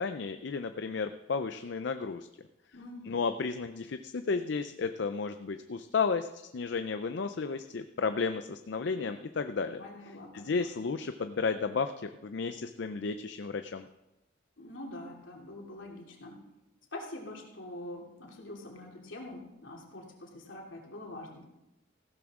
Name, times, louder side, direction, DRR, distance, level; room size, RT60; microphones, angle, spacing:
voice 1, 0.0-2.3 3.1-9.8 10.3-13.9, left 4 dB, 60° left, 9 dB, 0.5 m, -33 dB
voice 2, 2.7-3.2 9.8-10.7 14.6-16.4 16.9-21.5, left 1 dB, 80° left, -1 dB, 2.9 m, -45 dB
15.5 x 12.0 x 3.7 m, 0.93 s
head